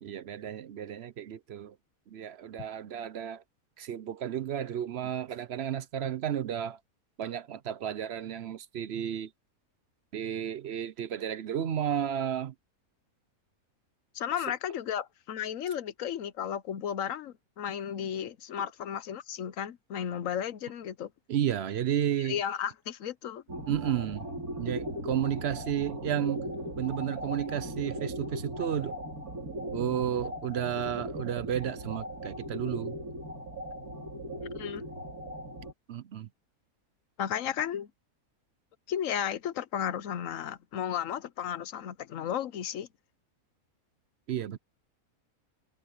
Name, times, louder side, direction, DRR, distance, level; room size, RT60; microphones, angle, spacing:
voice 1, 0.0-1.7 2.1-3.4 3.8-6.8 7.2-9.3 10.1-12.5 21.3-22.4 23.7-24.3 24.6-26.5 26.8-28.9 29.7-32.9 35.9-36.3 44.3-44.6, right 10 dB, 55° right, 0.8 m, -32 dB
voice 2, 14.1-21.1 22.2-23.4 34.5-34.8 37.2-37.9 38.9-42.9, left 9 dB, 65° left, 1.1 m, -34 dB
sound 1, 23.5-35.7, equal, 75° right, 4.0 m, -38 dB
omnidirectional pair, 1.5 m